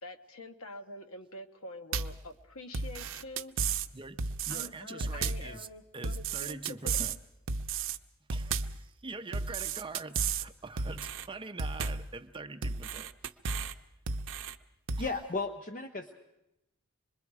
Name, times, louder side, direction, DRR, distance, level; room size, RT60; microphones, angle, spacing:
voice 1, 0.0-3.6 4.5-7.0, left 2 dB, 70° left, 1.2 m, -46 dB
sound 1, 1.9-2.2 2.7-3.9 4.2-4.7 5.0-5.5 6.0-7.2 7.5-8.0 8.3-8.8 9.3-10.5 10.8-11.3 11.6-12.1 12.6-13.7 14.1-14.5 14.9-15.1, right 5 dB, 65° right, 0.7 m, -33 dB
voice 2, 3.9-5.7 5.9-7.1 8.3-13.1 15.0-15.1, right 3 dB, 25° right, 0.7 m, -44 dB
voice 3, 15.0-16.2, left 3 dB, 40° left, 0.8 m, -35 dB
26.0 x 21.5 x 4.8 m
head